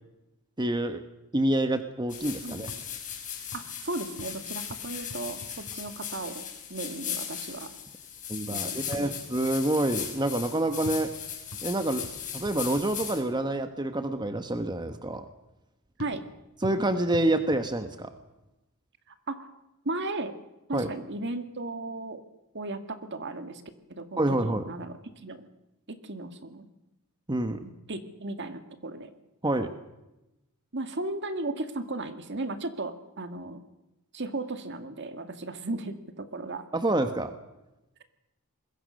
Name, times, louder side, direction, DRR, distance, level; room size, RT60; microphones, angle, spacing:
voice 1, 0.6-1.0 1.3-2.7 8.3-11.1 11.6-12.0 12.3-15.2 16.6-18.1 20.7-20.9 24.2-24.7 27.3-27.6 29.4-29.7 36.7-37.3, right 1 dB, 20° right, 8 dB, 1.2 m, -27 dB
sound 1, 2.1-13.2, left 8 dB, 35° left, 5.7 m, -38 dB
sound 2, 2.6-6.4 8.8-13.6 16.0-18.4, equal, 80° left, 5.0 m, -47 dB
voice 2, 3.5-7.7 8.5-9.2 16.0-16.2 19.3-19.5 19.8-20.3 20.7-22.2 22.5-23.6 23.9-25.5 25.9-26.7 27.6-29.1 30.7-33.6 34.1-36.6, right 2 dB, 55° right, 8 dB, 2.1 m, -36 dB
25.5 x 21.5 x 6.6 m, 0.95 s
head